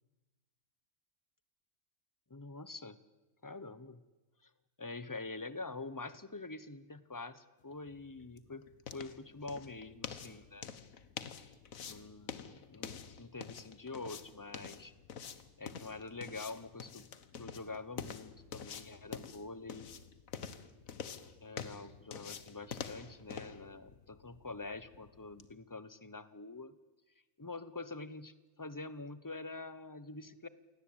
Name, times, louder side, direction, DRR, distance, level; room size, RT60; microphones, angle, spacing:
voice 1, 2.3-3.0 3.4-4.0 4.4-4.5 4.8-8.7 8.9-10.7 11.9-12.9 13.2-14.9 15.6-17.1 17.4-19.9 21.4-26.7 27.4-30.5, left 3 dB, 15° left, 15 dB, 0.9 m, -45 dB
sound 1, 7.7-25.5, left 7 dB, 85° left, 1.6 m, -47 dB
28.0 x 18.0 x 8.8 m, 1.2 s
omnidirectional pair, 1.4 m